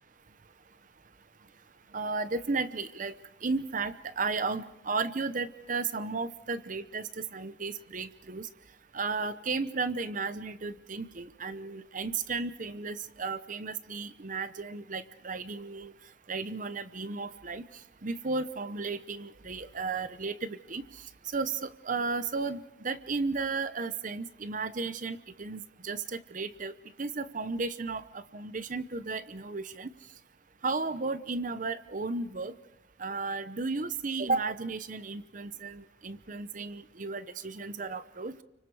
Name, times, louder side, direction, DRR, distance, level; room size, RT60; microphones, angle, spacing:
voice 1, 1.9-3.2 3.4-8.5 8.9-15.9 16.3-17.6 18.0-26.7 27.0-29.9 30.6-32.5 33.0-38.4, right 4 dB, 45° right, 12 dB, 0.8 m, -34 dB
29.5 x 25.0 x 4.8 m, 0.95 s
head